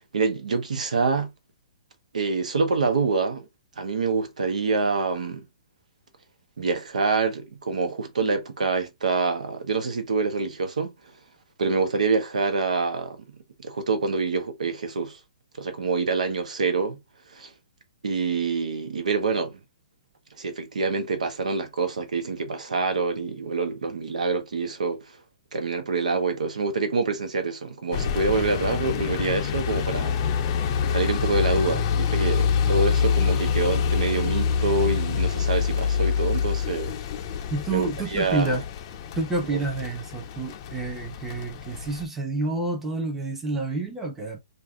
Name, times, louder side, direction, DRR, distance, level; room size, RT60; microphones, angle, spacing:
voice 1, 0.1-1.3 2.1-3.5 3.8-5.5 6.6-10.9 11.6-13.2 13.6-15.2 15.6-17.0 17.3-17.5 18.0-19.6 20.4-25.1 25.5-30.2 30.9-37.0 37.7-38.6 39.5-39.6, right 4 dB, 85° right, 0.8 m, -26 dB
sound 1, 27.9-42.1, left 7 dB, 35° left, 0.4 m, -26 dB
voice 2, 37.5-38.6 39.2-44.4, right 2 dB, 5° right, 0.7 m, -29 dB
2.6 x 2.3 x 3.6 m
hypercardioid pair, 155°, 4 cm